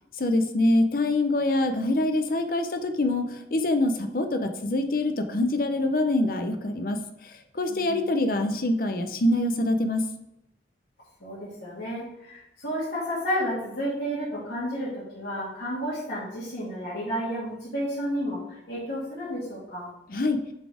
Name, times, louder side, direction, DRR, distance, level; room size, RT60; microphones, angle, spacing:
voice 1, 0.2-10.0 20.1-20.4, left 2 dB, 50° left, 7 dB, 0.7 m, -25 dB
voice 2, 7.7-8.1 11.2-19.9, equal, 80° left, -10 dB, 2.4 m, -31 dB
7.2 x 4.1 x 4.9 m, 0.88 s
head